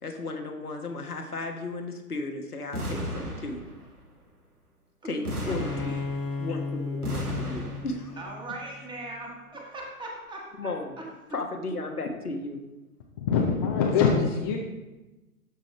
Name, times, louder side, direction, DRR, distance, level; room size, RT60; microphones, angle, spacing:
voice 1, 0.0-3.6 5.0-6.0 6.4-8.2 10.6-11.0 11.3-12.6, left 2 dB, 80° left, 3 dB, 1.3 m, -34 dB
sound 1, 2.7-4.0 5.2-6.5 7.0-8.2, equal, 90° right, 1.6 m, -34 dB
Bowed string instrument, 5.4-9.0, left 4 dB, 60° left, 1.3 m, -35 dB
voice 2, 8.2-10.7 11.0-11.1, right 2 dB, 10° right, -1 dB, 1.3 m, -39 dB
voice 3, 13.2-14.6, left 6 dB, 20° left, 0 dB, 0.4 m, -23 dB
12.5 x 5.2 x 3.2 m, 1.1 s
figure-of-eight pair, 110°, 44 cm